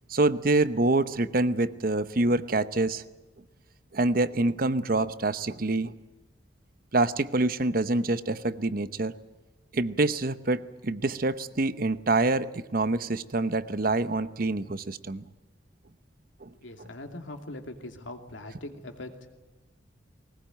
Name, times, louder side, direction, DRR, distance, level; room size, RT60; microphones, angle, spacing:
voice 1, 0.1-3.0 3.9-5.9 6.9-9.1 9.7-15.2 16.4-16.5, right 2 dB, 50° right, 14 dB, 0.8 m, -26 dB
voice 2, 16.6-19.3, left 1 dB, 85° left, 5 dB, 2.7 m, -41 dB
20.5 x 19.5 x 9.1 m, 1.1 s
head